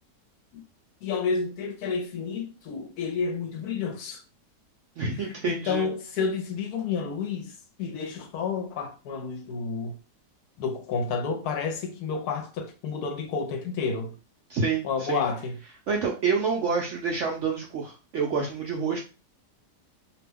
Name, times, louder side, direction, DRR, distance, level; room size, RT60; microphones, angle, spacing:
voice 1, 1.0-4.2 5.5-7.5 7.8-10.0 10.6-14.1 14.8-15.6, left 5 dB, 70° left, 1.0 m, -30 dB
voice 2, 5.0-5.9 14.5-15.2 15.9-19.0, right 5 dB, 70° right, 0.7 m, -28 dB
2.8 x 2.2 x 3.3 m
omnidirectional pair, 1.8 m